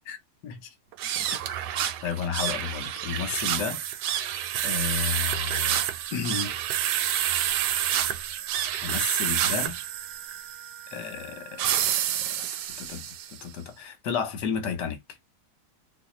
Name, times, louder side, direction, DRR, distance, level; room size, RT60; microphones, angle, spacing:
voice 1, 0.4-0.7 2.0-3.8 4.6-5.8 6.1-6.5 8.8-9.8 10.9-12.5 12.8-15.0, left 7 dB, 80° left, 1.5 m, -32 dB
sound 1, 0.9-13.4, right 11 dB, 80° right, 1.1 m, -29 dB
4.0 x 2.4 x 3.1 m
omnidirectional pair, 1.9 m